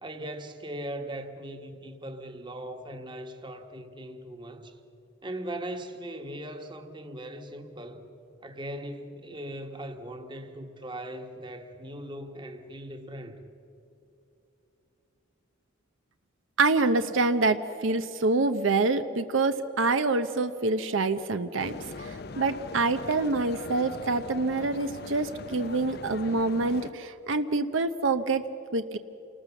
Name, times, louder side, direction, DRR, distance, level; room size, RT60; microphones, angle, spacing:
voice 1, 0.0-4.8 5.2-8.1 8.4-13.5, right 1 dB, 25° right, 1.3 m, -39 dB
voice 2, 16.6-28.4 28.7-29.0, right 3 dB, 75° right, 0.8 m, -26 dB
sound 1, 21.6-26.9, left 3 dB, 50° left, 0.6 m, -40 dB
28.5 x 19.5 x 7.1 m
head